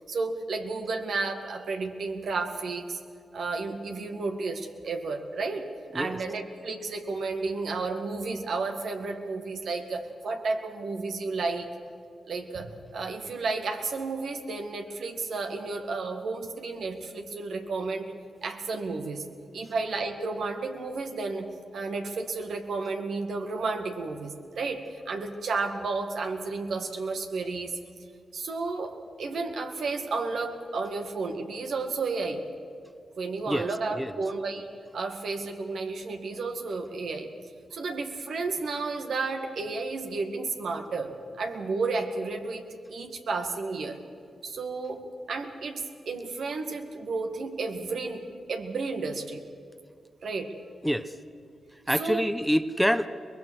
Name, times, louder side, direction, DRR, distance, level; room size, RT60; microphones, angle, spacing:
voice 1, 0.1-3.0 3.3-11.7 12.3-18.1 18.4-19.3 19.5-21.5 21.7-27.8 28.3-32.4 33.2-34.7 34.9-37.3 37.7-42.6 42.9-44.0 44.4-49.4 50.2-50.5 51.9-52.3, right 3 dB, 70° right, 4 dB, 2.0 m, -32 dB
voice 2, 50.8-51.1 51.9-53.1, equal, ahead, 12 dB, 1.1 m, -26 dB
23.5 x 20.5 x 6.4 m, 2.5 s
supercardioid pair, 40°, 0 cm